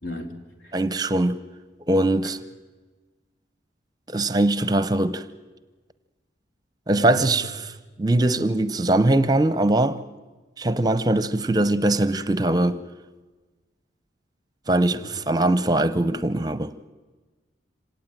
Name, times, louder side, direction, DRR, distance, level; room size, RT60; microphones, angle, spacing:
voice 1, 0.0-0.8 2.2-2.3 6.9-7.7 15.1-15.3, equal, 70° left, 3.2 m, -36 dB
voice 2, 0.7-1.4 1.9-2.4 4.1-5.2 6.9-7.5 8.0-10.0 10.6-12.8 14.7-16.7, right 1 dB, 20° right, 0.7 m, -21 dB
25.5 x 18.0 x 9.2 m
head